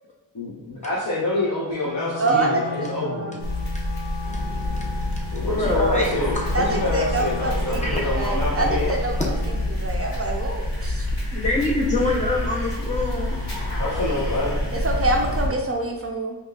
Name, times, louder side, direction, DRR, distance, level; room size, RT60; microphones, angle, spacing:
voice 1, 0.3-3.4 5.3-8.9 13.8-14.6, left 2 dB, 45° left, -7 dB, 0.8 m, -27 dB
Wind instrument woodwind instrument, 1.8-9.8, left 2 dB, 80° left, 0.5 m, -37 dB
voice 2, 2.2-3.3 6.5-9.1 9.7-11.1 14.8-16.4, right 2 dB, 35° right, 1 dB, 0.4 m, -26 dB
sound 1, 3.4-15.5, left 1 dB, 65° left, 1.4 m, -27 dB
voice 3, 5.4-6.4 7.8-8.1 11.3-13.4, left 2 dB, 15° left, -4 dB, 0.6 m, -25 dB
5.2 x 2.4 x 2.3 m, 1.2 s
wide cardioid pair, 90°, 43 cm